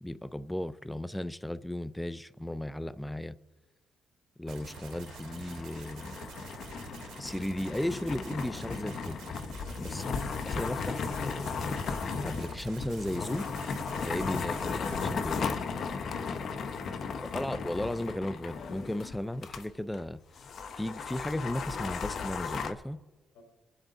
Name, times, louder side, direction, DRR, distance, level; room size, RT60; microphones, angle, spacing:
voice 1, 0.0-3.4 4.4-6.2 7.2-9.2 9.8-10.1 10.4-11.5 12.2-13.5 14.0-15.6 17.2-20.2 20.7-23.0, left 1 dB, 5° left, 0.4 m, -35 dB
sound 1, 4.5-19.6 19.9-20.0 20.4-22.7, left 5 dB, 60° left, 1.1 m, -36 dB
sound 2, 4.5-15.1, right 7 dB, 75° right, 3.3 m, -48 dB
voice 2, 9.6-10.1 16.2-17.2 23.3-23.4, left 1 dB, 90° left, 3.9 m, -55 dB
23.5 x 8.1 x 3.9 m
cardioid pair, 90°, 0 cm